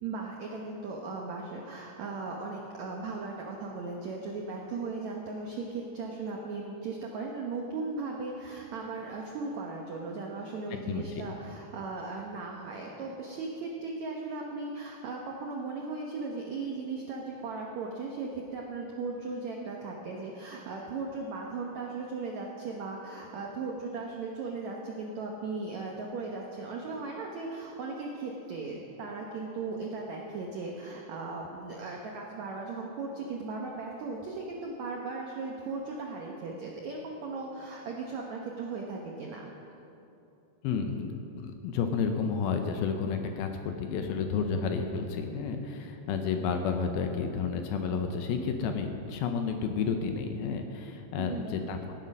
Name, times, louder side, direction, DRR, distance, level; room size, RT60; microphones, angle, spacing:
voice 1, 0.0-39.5 51.2-51.9, right 3 dB, 75° right, -1 dB, 1.6 m, -37 dB
voice 2, 10.7-11.2 40.6-51.9, left 5 dB, 75° left, 5 dB, 2.4 m, -31 dB
17.0 x 9.8 x 5.4 m, 2.8 s
omnidirectional pair, 4.7 m